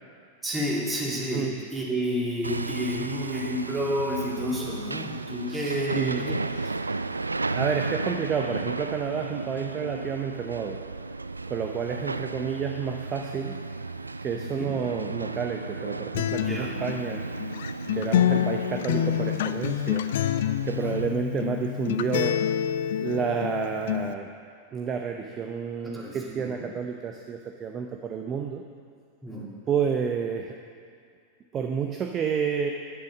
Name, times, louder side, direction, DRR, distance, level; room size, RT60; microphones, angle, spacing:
voice 1, 0.4-6.4 6.6-6.7 14.4-14.7 16.4-16.7 20.8-20.9 25.8-26.7 29.2-29.5, equal, 10° right, -5 dB, 2.9 m, -30 dB
Hammer, 2.4-21.1, right 3 dB, 80° right, 0.3 m, -34 dB
voice 2, 5.5-6.3 7.5-10.8 11.5-13.6 14.2-17.3 17.9-20.1 20.6-22.4 23.0-24.3 24.7-28.6 29.7-30.6 31.5-32.7, right 6 dB, 25° right, 4 dB, 0.8 m, -30 dB
Acoustic guitar, 16.1-24.1, left 11 dB, 55° left, 0.4 m, -27 dB
10.5 x 10.5 x 6.2 m, 2.2 s
figure-of-eight pair, 90°, 0 cm